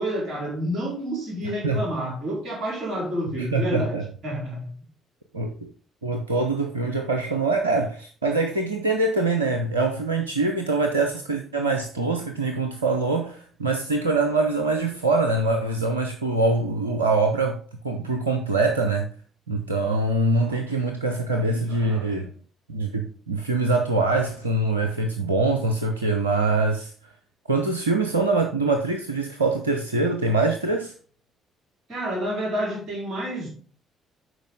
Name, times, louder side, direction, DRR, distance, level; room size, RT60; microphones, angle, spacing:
voice 1, 0.0-4.7 21.5-22.3 31.9-33.5, equal, 45° right, 4.2 m, -29 dB
voice 2, 3.4-4.1 5.3-5.7 6.0-17.6 17.8-19.1 19.5-22.3 22.7-26.9 27.5-30.9, right 3 dB, 85° right, 0.5 m, -24 dB
11.5 x 4.6 x 3.7 m
figure-of-eight pair, 45°, 0 cm